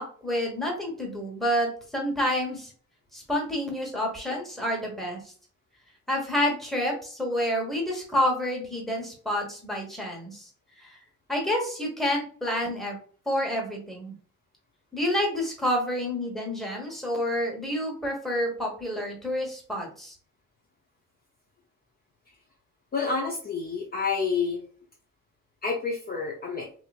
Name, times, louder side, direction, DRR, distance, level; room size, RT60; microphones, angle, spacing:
voice 1, 0.0-2.7 3.1-5.2 6.1-10.5 10.8-10.9 11.3-13.0 13.2-14.1 14.9-20.1, equal, ahead, -1 dB, 1.4 m, -29 dB
voice 2, 22.9-24.6 25.6-26.7, left 5 dB, 30° left, -1 dB, 0.7 m, -28 dB
3.0 x 2.8 x 2.4 m, 0.43 s
cardioid pair, 90°, 30 cm